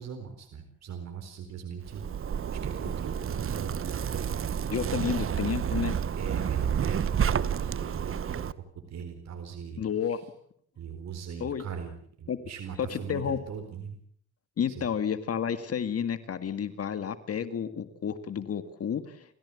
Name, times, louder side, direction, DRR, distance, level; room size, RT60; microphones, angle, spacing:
voice 1, 0.0-2.0 2.3-4.4 4.9-5.0 6.2-9.8 10.8-14.0 14.8-14.9, right 7 dB, 60° right, 5 dB, 4.2 m, -40 dB
Zipper (clothing), 1.9-8.5, right 8 dB, 45° right, 1.0 m, -30 dB
voice 2, 4.7-6.0 9.8-10.2 11.4-11.6 12.3-12.4 12.8-13.4 14.6-19.3, left 8 dB, 50° left, 11 dB, 2.0 m, -31 dB
29.5 x 15.5 x 8.5 m, 0.65 s
cardioid pair, 90°, 30 cm